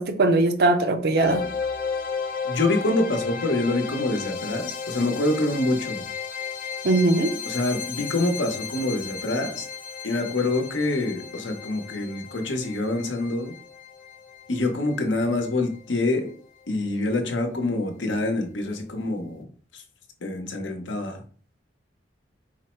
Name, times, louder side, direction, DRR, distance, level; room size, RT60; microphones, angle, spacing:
voice 1, 0.0-1.4 6.8-7.3, right 2 dB, 55° right, 0.6 m, -20 dB
sound 1, 1.2-16.1, left 6 dB, 50° left, 0.5 m, -34 dB
voice 2, 2.4-6.0 7.4-9.7 10.0-13.5 14.5-16.3 16.7-19.4 19.7-19.8 20.2-21.2, left 2 dB, 85° left, 0.9 m, -26 dB
4.6 x 2.1 x 4.4 m
head